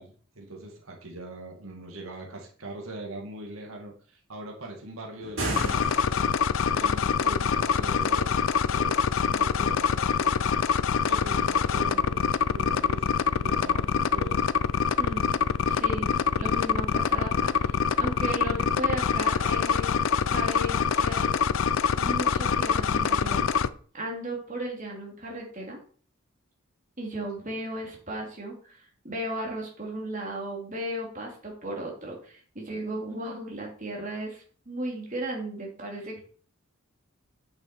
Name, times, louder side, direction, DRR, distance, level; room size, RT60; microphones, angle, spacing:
voice 1, 0.0-6.2 6.7-10.5 11.0-14.4 27.4-27.5, right 2 dB, 85° right, 1 dB, 2.0 m, -41 dB
sound 1, 5.2-6.5, right 2 dB, 70° right, 3.5 m, -33 dB
sound 2, 5.6-23.7, left 6 dB, 70° left, 0.5 m, -25 dB
voice 2, 15.0-15.4 15.7-19.9 20.3-21.4 21.9-23.4 23.9-25.8 27.0-36.2, right 1 dB, 40° right, -1 dB, 2.8 m, -35 dB
8.7 x 6.4 x 4.4 m, 0.44 s
head